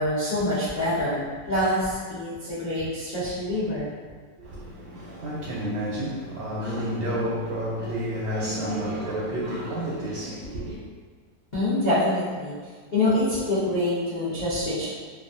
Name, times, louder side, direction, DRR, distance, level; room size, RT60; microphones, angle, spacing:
voice 1, 0.0-3.9 11.5-12.5 12.9-14.9, left 1 dB, 75° left, 0.4 m, -25 dB
voice 2, 4.4-10.8, equal, 85° right, 1.4 m, -30 dB
3.0 x 2.3 x 2.5 m
omnidirectional pair, 2.0 m